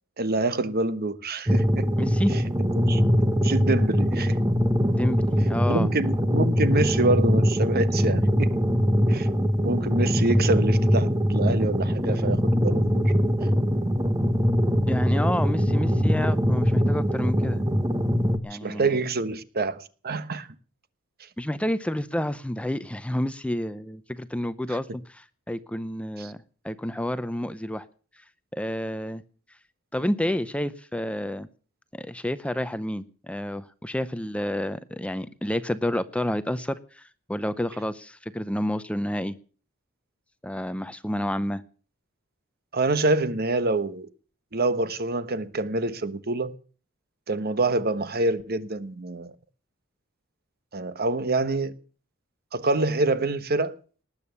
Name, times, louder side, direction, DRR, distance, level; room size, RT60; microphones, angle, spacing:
voice 1, 0.2-1.9 2.3-3.1 3.4-4.4 5.7-8.5 9.1-9.3 9.6-13.1 18.5-20.5 24.7-24.8 26.2-26.3 42.7-44.1 44.5-46.6 47.3-49.3 50.7-51.8 52.5-53.7, right 2 dB, 45° right, 1.2 m, -26 dB
sound 1, 1.5-18.4, equal, 15° right, 1.2 m, -22 dB
voice 2, 2.0-2.4 5.0-5.9 14.9-17.6 18.4-18.9 21.4-27.9 28.5-29.2 29.9-31.5 31.9-39.4 40.4-41.6, left 1 dB, 5° left, 0.6 m, -29 dB
19.5 x 8.5 x 7.0 m
head